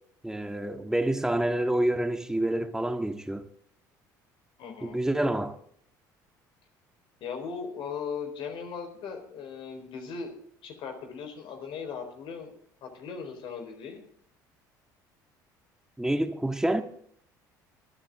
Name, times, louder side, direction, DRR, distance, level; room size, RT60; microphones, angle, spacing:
voice 1, 0.2-3.4 4.8-5.6 16.0-16.8, right 1 dB, 5° right, 1.8 m, -27 dB
voice 2, 4.6-5.0 7.2-10.3 10.6-12.5 12.8-14.0, left 6 dB, 60° left, 4.2 m, -38 dB
26.0 x 8.8 x 3.7 m
hypercardioid pair, 65°, 10 cm